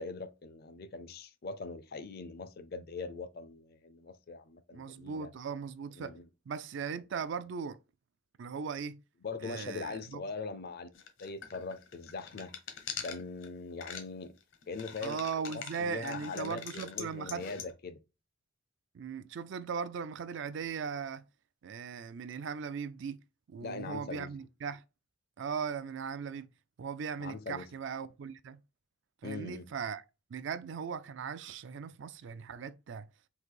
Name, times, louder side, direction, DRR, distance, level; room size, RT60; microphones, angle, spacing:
voice 1, 0.0-5.3 6.0-6.2 9.2-10.9 11.2-12.6 13.0-14.3 14.7-15.2 15.5-18.0 23.6-24.3 27.2-27.7 29.2-29.7, left 4 dB, 50° left, 0.5 m, -41 dB
voice 2, 4.7-6.2 6.5-7.8 8.4-9.0 9.4-10.2 15.0-17.4 18.9-21.2 21.6-23.2 23.5-24.8 25.4-26.5 26.8-28.6 29.2-30.0 30.3-33.1, right 6 dB, 65° right, 0.4 m, -38 dB
sound 1, 10.9-13.5 13.8-14.0 14.4-17.7, left 7 dB, 70° left, 0.9 m, -44 dB
3.9 x 2.6 x 4.6 m
head